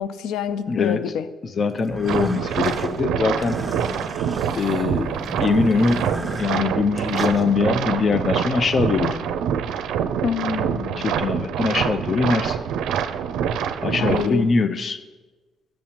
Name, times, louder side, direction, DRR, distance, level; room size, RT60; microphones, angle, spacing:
voice 1, 0.0-1.3 10.2-11.1 14.0-14.4, left 8 dB, 90° left, 13 dB, 0.4 m, -27 dB
voice 2, 0.7-1.1 1.4-3.6 4.5-5.1 5.4-6.1 6.4-9.2 11.0-12.6 13.8-15.0, left 4 dB, 45° left, 11 dB, 0.6 m, -22 dB
sound 1, 1.8-7.4, right 1 dB, 10° right, 0.9 m, -34 dB
sound 2, 2.1-14.3, right 8 dB, 85° right, 0.4 m, -25 dB
12.0 x 7.5 x 2.9 m, 1.2 s
cardioid pair, 90°, 0 cm